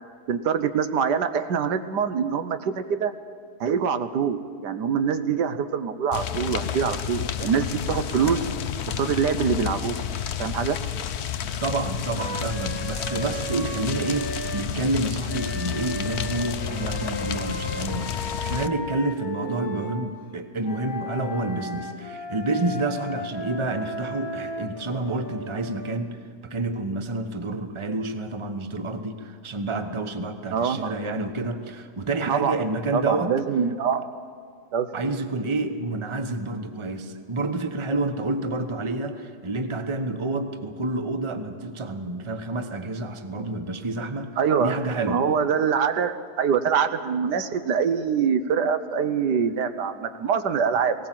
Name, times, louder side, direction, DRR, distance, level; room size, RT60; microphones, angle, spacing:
voice 1, 0.3-3.1 3.6-8.5 8.9-10.0 10.4-10.8 30.5-30.9 32.3-32.6 32.9-34.1 34.7-34.9 44.4-44.7 45.1-51.1, right 6 dB, 90° right, 10 dB, 1.5 m, -24 dB
sound 1, 6.1-18.7, left 9 dB, 65° left, 0.7 m, -30 dB
voice 2, 11.6-33.3 34.9-44.3 44.6-45.2, right 2 dB, 20° right, 7 dB, 0.9 m, -29 dB
Wind instrument woodwind instrument, 12.2-14.7 15.3-20.0 20.6-26.0, left 1 dB, 30° left, 1.6 m, -36 dB
19.5 x 18.5 x 7.5 m, 2.1 s
omnidirectional pair, 1.7 m